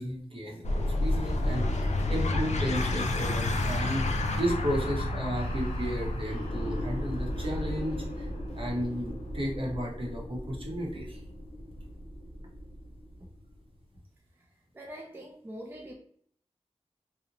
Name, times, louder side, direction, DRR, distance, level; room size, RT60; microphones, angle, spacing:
voice 1, 0.0-8.3 8.5-11.2, equal, 50° right, -2 dB, 0.7 m, -34 dB
sound 1, 0.6-11.7, left 2 dB, 80° left, 0.4 m, -32 dB
sound 2, 0.8-13.6, equal, 60° left, 0.7 m, -37 dB
voice 2, 14.7-15.9, equal, 20° right, 0 dB, 0.3 m, -43 dB
2.8 x 2.0 x 2.5 m, 0.62 s
wide cardioid pair, 75°, 12 cm